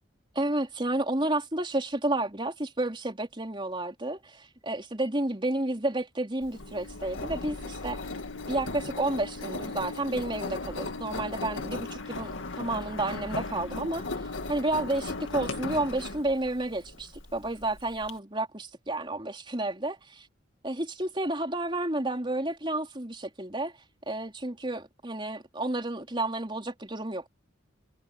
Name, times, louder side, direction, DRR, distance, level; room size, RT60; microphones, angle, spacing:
voice 1, 0.4-8.0 8.5-14.1 14.5-20.3 20.6-23.7 24.1-27.3, right 2 dB, 25° right, 3.8 m, -31 dB
Engine, 6.4-18.1, left 3 dB, 85° left, 2.2 m, -37 dB
head